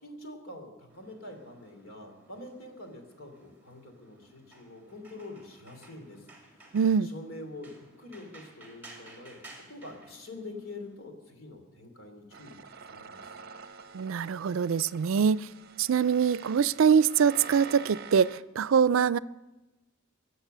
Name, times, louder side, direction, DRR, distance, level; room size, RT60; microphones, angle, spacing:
voice 1, 0.0-6.2 6.6-6.7 7.0-7.7 8.0-9.4 9.7-13.2, left 2 dB, 90° left, 3.0 m, -45 dB
sound 1, 0.9-10.9, right 2 dB, 10° right, 2.7 m, -55 dB
voice 2, 6.7-7.1 13.9-15.5 15.8-19.2, right 7 dB, 80° right, 0.4 m, -24 dB
sound 2, 12.3-18.4, right 5 dB, 50° right, 0.8 m, -47 dB
23.5 x 8.0 x 6.7 m
head